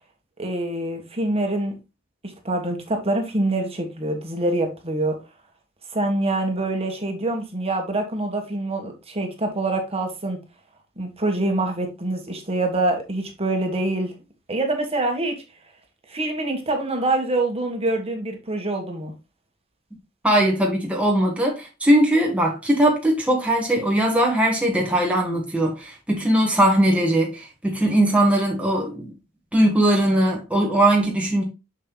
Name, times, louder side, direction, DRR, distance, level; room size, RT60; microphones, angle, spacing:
voice 1, 0.4-1.8 2.2-5.2 5.9-10.4 11.0-14.1 14.5-15.4 16.1-19.1, right 2 dB, 30° right, 1.6 m, -25 dB
voice 2, 20.2-29.1 29.5-31.4, right 1 dB, 5° right, 1.4 m, -20 dB
7.2 x 6.7 x 2.3 m
head